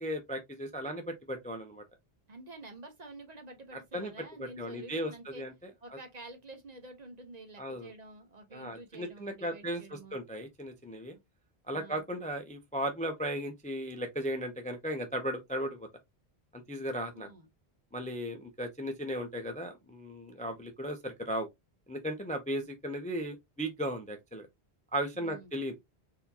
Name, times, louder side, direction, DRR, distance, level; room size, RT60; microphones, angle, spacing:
voice 1, 0.0-1.8 3.9-4.1 4.4-5.1 5.4-5.5 5.9-6.0 7.6-7.9 8.5-11.1 11.7-15.9 16.5-17.3 17.9-21.5 21.9-24.5 24.9-25.7, equal, 10° left, 0.5 m, -36 dB
voice 2, 2.3-5.4 5.8-10.2 11.1-11.2 11.7-12.0 16.9-17.5 25.1-25.6, right 2 dB, 45° right, 0.9 m, -49 dB
4.1 x 2.8 x 2.7 m
omnidirectional pair, 1.1 m